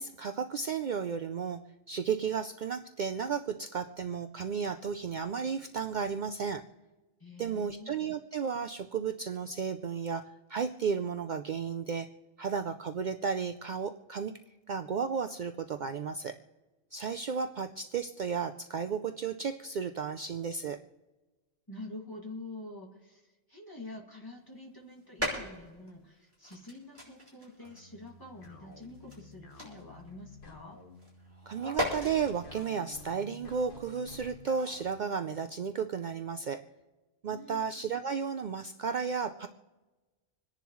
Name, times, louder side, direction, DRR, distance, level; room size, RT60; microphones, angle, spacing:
voice 1, 0.0-1.6 1.9-6.6 7.4-12.1 12.4-14.3 14.7-16.3 16.9-20.8 31.5-36.6 37.2-39.5, right 6 dB, 55° right, 7 dB, 0.6 m, -33 dB
voice 2, 7.2-7.9 21.7-30.8 37.3-38.0, left 2 dB, 20° left, 0 dB, 2.2 m, -47 dB
sound 1, 24.9-25.9 26.3-30.3 30.7-34.4, equal, 15° right, 5.9 m, -39 dB
sound 2, 27.6-34.9, left 3 dB, 55° left, 1.4 m, -52 dB
26.5 x 10.5 x 3.1 m, 1.2 s
omnidirectional pair, 1.1 m